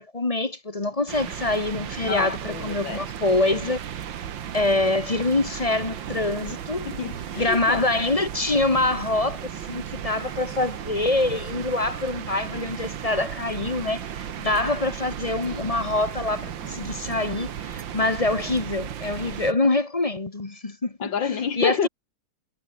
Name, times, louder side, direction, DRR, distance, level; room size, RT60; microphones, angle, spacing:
voice 1, 0.0-3.8 4.5-6.9 7.3-21.1 21.6-21.9, left 2 dB, 20° left, 1.1 m, -25 dB
sound 1, 1.1-19.5, right 9 dB, 75° right, 2.0 m, -35 dB
voice 2, 2.0-3.0 6.8-7.8 21.0-21.9, left 7 dB, 75° left, 2.8 m, -28 dB
omnidirectional pair, 2.0 m